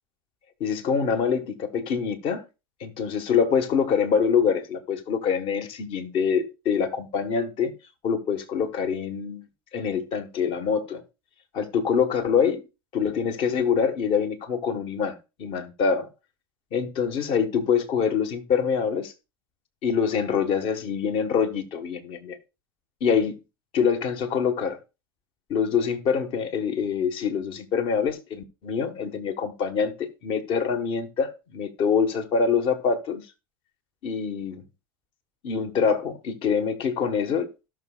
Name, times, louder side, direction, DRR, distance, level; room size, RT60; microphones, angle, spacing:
voice 1, 0.6-2.4 2.8-7.7 8.0-9.4 9.7-11.0 11.5-12.6 12.9-16.1 16.7-19.1 19.8-22.4 23.0-23.4 23.7-24.8 25.5-33.2 34.0-34.6 35.4-37.5, left 6 dB, 45° left, 1.4 m, -25 dB
17.5 x 6.3 x 2.4 m
hypercardioid pair, 90°, 12 cm